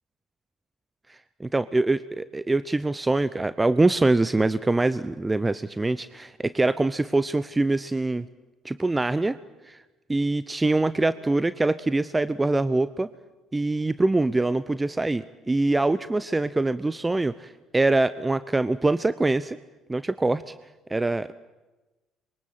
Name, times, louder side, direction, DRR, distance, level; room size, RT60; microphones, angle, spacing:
voice 1, 1.1-8.3 8.6-9.4 9.6-9.8 10.1-13.1 13.5-19.6 19.9-20.5 20.9-21.3, right 2 dB, 20° right, 15 dB, 0.8 m, -24 dB
26.5 x 23.0 x 7.6 m, 1.1 s
hypercardioid pair, 55°, 0 cm